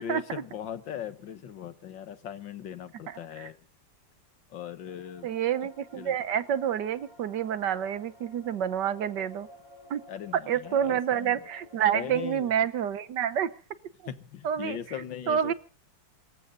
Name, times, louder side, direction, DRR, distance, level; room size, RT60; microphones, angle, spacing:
voice 1, 0.0-3.6 4.5-5.3 6.0-6.2 10.1-11.3 11.9-12.5 14.1-15.5, left 9 dB, 75° left, 12 dB, 1.9 m, -39 dB
voice 2, 3.1-3.5 5.2-9.5 9.9-10.0 10.5-13.5 14.4-14.8 15.3-15.5, right 9 dB, 70° right, 14 dB, 1.5 m, -28 dB
sound 1, 4.7-12.8, left 1 dB, 15° left, 4.2 m, -53 dB
25.5 x 14.5 x 3.8 m, 0.38 s
omnidirectional pair, 2.0 m